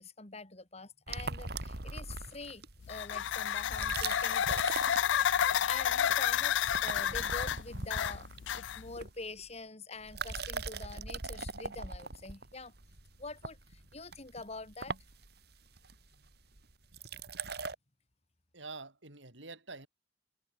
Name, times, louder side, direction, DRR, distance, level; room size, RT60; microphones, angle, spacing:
voice 1, 0.0-4.8 5.7-8.3 8.5-12.7 13.2-15.0, left 3 dB, 35° left, 2.4 m, -45 dB
sound 1, 1.1-2.9 3.6-5.6 5.9-6.3 6.5-9.5 10.0-17.7, right 4 dB, 60° right, 3.0 m, -41 dB
sound 2, 2.8-9.0, left 9 dB, 85° left, 0.4 m, -31 dB
voice 2, 18.5-19.9, right 3 dB, 90° right, 5.6 m, -46 dB
head